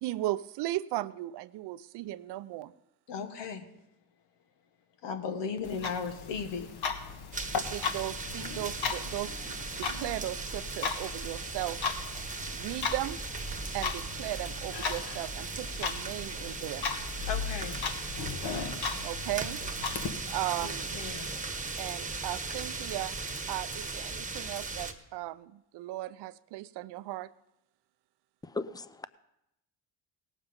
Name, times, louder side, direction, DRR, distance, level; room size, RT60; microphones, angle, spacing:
voice 1, 0.0-2.7 7.7-11.8 12.5-13.2 13.7-16.9 19.0-19.6 20.3-20.9 21.8-23.2 23.5-27.3, right 16 dB, 70° right, 15 dB, 0.6 m, -36 dB
voice 2, 3.1-3.7 5.0-6.7 17.2-17.8 20.6-21.3, left 6 dB, 75° left, 7 dB, 1.5 m, -36 dB
Clock, 5.6-20.1, left 6 dB, 60° left, 1.5 m, -37 dB
sound 1, 7.3-24.9, right 3 dB, 20° right, 1.2 m, -38 dB
voice 3, 28.5-29.0, left 3 dB, 10° left, 15 dB, 0.5 m, -36 dB
18.0 x 7.3 x 5.3 m, 0.86 s
supercardioid pair, 85°, 43 cm